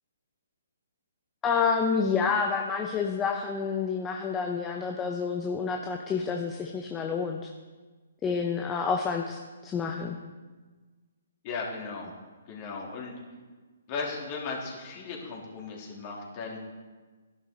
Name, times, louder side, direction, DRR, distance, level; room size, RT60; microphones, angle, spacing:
voice 1, 1.4-7.5 8.2-10.2, left 5 dB, 15° left, 2 dB, 0.8 m, -29 dB
voice 2, 11.4-12.1 12.5-13.1 13.9-16.6, left 4 dB, 35° left, -2 dB, 3.3 m, -36 dB
12.5 x 11.0 x 4.0 m, 1.3 s
figure-of-eight pair, 130°, 0 cm